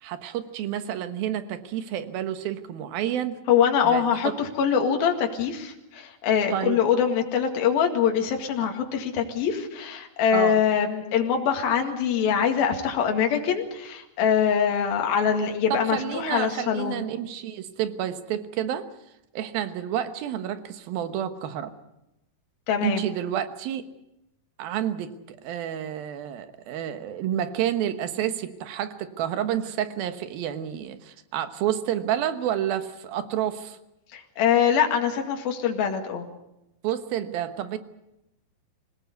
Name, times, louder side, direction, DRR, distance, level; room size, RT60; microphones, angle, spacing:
voice 1, 0.0-3.4 3.8-4.3 6.5-6.8 8.6-8.7 10.3-10.6 15.7-18.9 19.3-21.7 22.8-23.9 24.6-33.8 36.8-37.8, right 10 dB, 75° right, 10 dB, 3.0 m, -29 dB
voice 2, 3.5-17.0 22.7-23.0 34.1-36.3, left 8 dB, 70° left, 3 dB, 3.8 m, -23 dB
26.0 x 17.0 x 8.2 m, 0.89 s
omnidirectional pair, 4.4 m